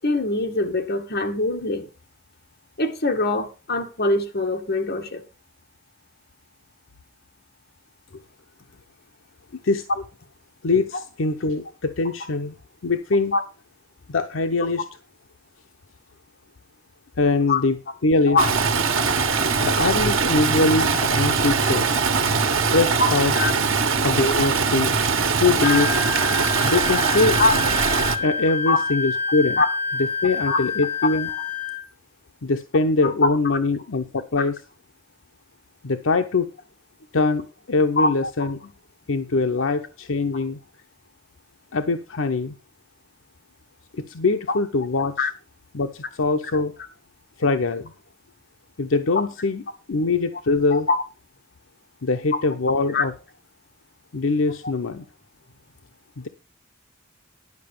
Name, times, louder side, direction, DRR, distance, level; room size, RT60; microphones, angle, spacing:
voice 1, 0.0-1.9 2.8-5.2 13.3-13.4 17.5-17.6 18.3-18.5 20.6-21.0 23.0-23.5 25.6-25.7 27.4-27.5 28.7-28.8 29.6-29.7 30.5-30.6 33.0-33.3 38.0-38.1 44.5-44.6 45.2-45.3 50.7-51.0 52.9-53.0, left 3 dB, 55° left, 1.8 m, -23 dB
voice 2, 10.6-12.5 12.8-13.4 14.1-14.8 17.2-17.8 18.0-18.4 19.6-21.9 22.7-23.3 24.0-24.9 25.4-25.9 26.6-27.4 28.2-29.6 30.2-31.3 32.4-34.6 35.8-36.5 37.1-38.6 39.1-40.6 41.7-42.5 43.9-45.1 45.7-46.7 47.4-47.9 48.8-50.9 52.0-53.1 54.1-55.1 56.2-56.3, left 3 dB, 75° left, 0.8 m, -22 dB
Stream, 18.4-28.2, right 5 dB, 80° right, 1.5 m, -21 dB
Wind instrument woodwind instrument, 25.6-31.8, left 4 dB, 10° left, 2.5 m, -28 dB
11.0 x 5.8 x 6.7 m
head